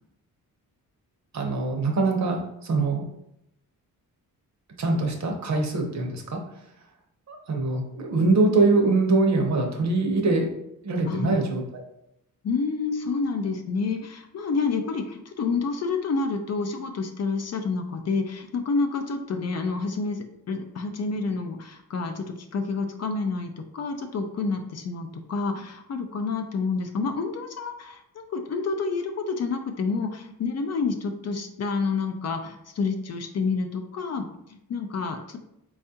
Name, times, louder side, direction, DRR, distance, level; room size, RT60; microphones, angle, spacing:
voice 1, 1.3-3.0 4.8-6.4 7.3-10.5 10.8-11.8, right 3 dB, 50° right, 2 dB, 0.7 m, -23 dB
voice 2, 11.1-11.4 12.4-35.5, left 4 dB, 50° left, 5 dB, 0.4 m, -29 dB
4.4 x 2.3 x 2.7 m, 0.81 s
wide cardioid pair, 120°, 35 cm